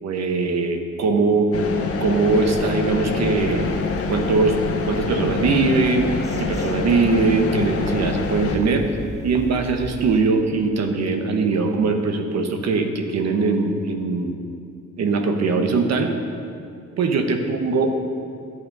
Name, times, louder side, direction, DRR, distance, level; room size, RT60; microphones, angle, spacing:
voice 1, 0.0-1.5 2.0-3.7 4.1-4.6 4.9-6.1 6.4-8.9 9.2-14.3 15.0-16.1 17.0-17.9, right 4 dB, 60° right, 5 dB, 1.2 m, -21 dB
sound 1, 1.5-8.6, left 4 dB, 50° left, 1.3 m, -26 dB
sound 2, 3.6-10.2, right 4 dB, 25° right, 0.8 m, -36 dB
11.0 x 8.0 x 5.4 m, 2.4 s
cardioid pair, 90°, 30 cm